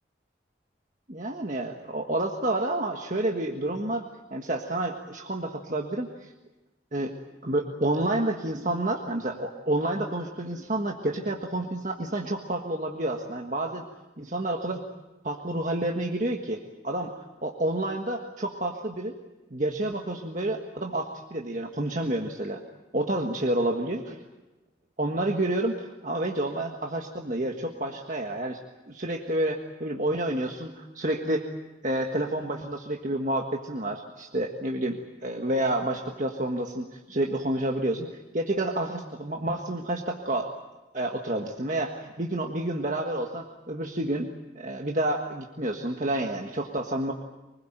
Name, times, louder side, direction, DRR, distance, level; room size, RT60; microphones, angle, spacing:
voice 1, 1.1-6.3 6.9-7.1 7.4-13.8 14.2-14.8 15.2-19.1 19.5-22.6 22.9-24.2 25.0-28.6 28.9-31.4 31.8-38.1 38.3-40.5 40.9-44.3 44.5-47.1, right 1 dB, 45° right, 2 dB, 1.6 m, -29 dB
25.0 x 20.5 x 9.1 m, 1.1 s
head